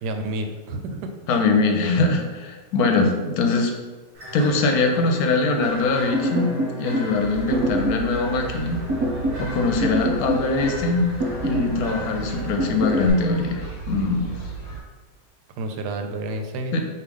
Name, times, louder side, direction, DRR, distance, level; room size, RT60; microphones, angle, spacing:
voice 1, 0.0-1.1 15.6-16.8, right 2 dB, 90° right, 5 dB, 1.2 m, -29 dB
voice 2, 1.3-3.7 4.3-6.5 6.8-8.8 9.4-11.1 11.4-13.6 13.9-14.4 16.7-16.8, left 3 dB, 70° left, 3 dB, 1.1 m, -22 dB
sound 1, 4.1-13.1, right 1 dB, 40° right, 1.7 m, -36 dB
sound 2, 6.1-7.1 7.5-8.1 8.9-9.5 9.8-10.8 11.2-11.8 12.6-13.1, right 1 dB, 25° right, 0.6 m, -25 dB
sound 3, 7.1-14.8, right 5 dB, 40° left, 0.9 m, -35 dB
4.8 x 2.8 x 3.5 m, 1.3 s
omnidirectional pair, 1.7 m